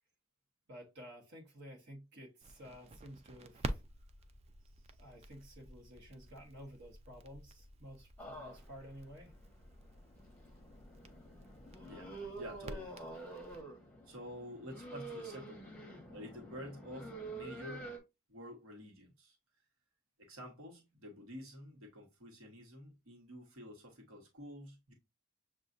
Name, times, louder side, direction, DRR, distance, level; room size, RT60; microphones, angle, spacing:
voice 1, 0.7-3.8 5.0-9.3, equal, 55° right, 1.3 m, -52 dB
Crackle, 2.4-13.6, right 2 dB, 30° right, 0.3 m, -49 dB
sound 1, 8.2-18.0, right 2 dB, 5° left, 0.9 m, -48 dB
voice 2, 11.9-13.2 14.1-15.8 16.1-17.9 18.3-19.4 20.2-24.9, equal, 80° right, 1.3 m, -49 dB
6.8 x 2.4 x 2.5 m
head